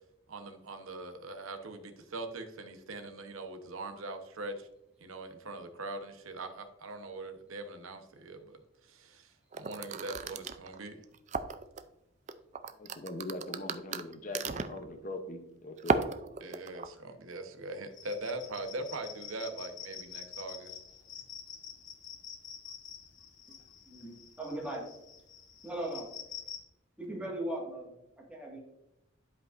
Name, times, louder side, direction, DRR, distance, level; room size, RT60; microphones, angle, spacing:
voice 1, 0.3-4.7 5.0-11.0 16.4-20.7, right 2 dB, 80° right, 7 dB, 1.0 m, -42 dB
sound 1, 9.5-11.8 12.3-14.8 15.8-16.9, right 4 dB, 35° right, 0.4 m, -34 dB
voice 2, 12.7-16.1, left 2 dB, 40° left, 5 dB, 0.8 m, -41 dB
sound 2, 17.9-26.6, left 8 dB, 70° left, 1.2 m, -47 dB
voice 3, 23.9-24.9 25.6-26.1 27.0-28.6, right 1 dB, 5° right, -3 dB, 1.8 m, -39 dB
11.5 x 5.2 x 2.6 m, 0.86 s
head